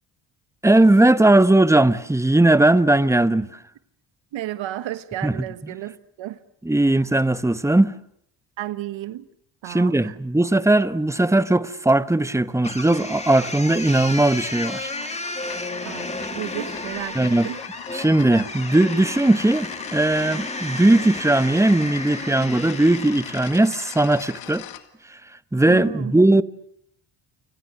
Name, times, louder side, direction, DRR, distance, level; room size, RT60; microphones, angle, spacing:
voice 1, 0.6-3.6 5.2-5.3 6.6-7.9 9.7-14.9 17.1-17.5 17.9-24.6 25.1-25.2 25.5-26.4, right 2 dB, 5° right, 1.0 m, -18 dB
voice 2, 4.3-6.4 8.6-9.3 9.6-10.2 15.8-17.6 25.7-26.2, right 13 dB, 75° right, 1.3 m, -33 dB
sound 1, 12.6-23.7, left 2 dB, 15° left, 2.7 m, -33 dB
sound 2, 14.7-24.8, left 12 dB, 85° left, 2.1 m, -39 dB
29.5 x 26.0 x 6.6 m
cardioid pair, 80°, 46 cm